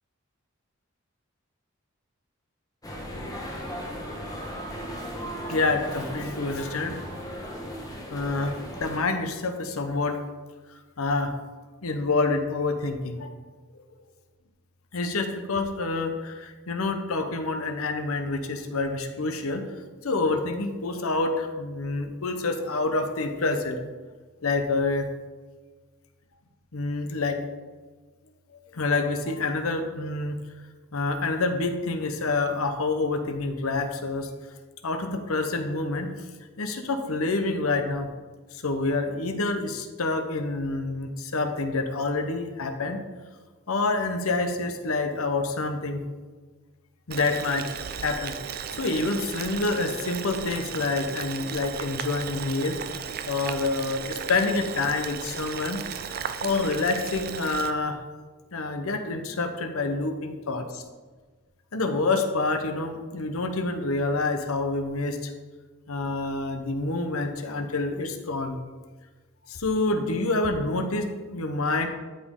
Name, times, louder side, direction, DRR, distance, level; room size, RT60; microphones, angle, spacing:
sound 1, 2.8-9.0, equal, 15° left, 1.2 m, -36 dB
voice 1, 5.5-7.0 8.1-8.5 8.8-10.2 10.7-11.3 11.8-13.3 13.7-13.8 14.9-19.7 20.0-23.8 24.4-25.1 26.7-27.4 28.7-30.4 30.9-34.3 34.8-36.3 36.6-38.1 38.5-43.0 43.7-46.0 47.1-48.3 48.8-52.8 53.2-55.8 56.1-58.0 58.5-60.8 61.7-65.3 65.9-68.6 69.5-71.9, left 3 dB, 80° left, 6 dB, 0.9 m, -27 dB
Boiling, 47.1-57.7, right 7 dB, 45° right, 0.4 m, -35 dB
12.5 x 5.2 x 3.7 m, 1.4 s
head